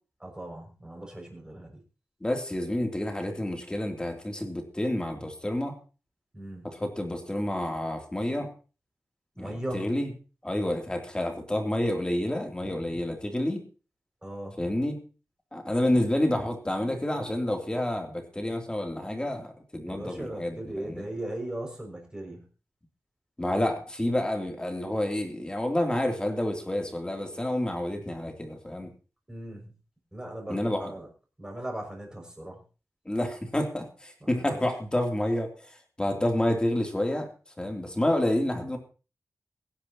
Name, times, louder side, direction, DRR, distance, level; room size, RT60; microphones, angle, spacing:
voice 1, 0.2-1.8 6.3-6.8 9.4-9.9 14.2-14.6 19.8-22.5 29.3-29.7 30.1-31.1 31.4-32.6 34.5-34.6, right 1 dB, 15° right, 0 dB, 6.1 m, -38 dB
voice 2, 2.2-5.8 6.6-8.5 9.4-10.1 10.4-13.6 14.6-15.0 15.5-21.0 23.4-28.9 30.5-30.9 33.0-37.3 37.6-38.8, left 1 dB, 15° left, 3 dB, 2.9 m, -29 dB
23.0 x 10.5 x 2.9 m, 0.35 s
wide cardioid pair, 120°, 5 cm